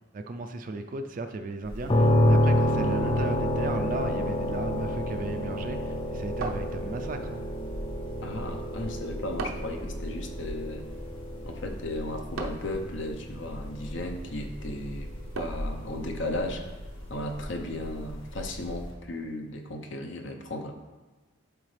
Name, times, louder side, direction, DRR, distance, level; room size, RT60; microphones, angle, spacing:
voice 1, 0.1-7.4, right 2 dB, 40° right, 6 dB, 0.4 m, -35 dB
sound 1, 1.6-18.9, equal, 80° left, 1.7 m, -40 dB
sound 2, 1.9-15.6, left 1 dB, 25° left, 0.5 m, -29 dB
sound 3, 6.4-7.3 9.4-9.8 12.4-12.8 15.4-15.8, right 3 dB, 80° right, 0.7 m, -37 dB
voice 2, 8.2-10.9 11.4-15.1 15.4-16.6 17.1-20.7, left 1 dB, 65° left, 4 dB, 0.7 m, -35 dB
11.5 x 3.9 x 3.3 m, 1.2 s
head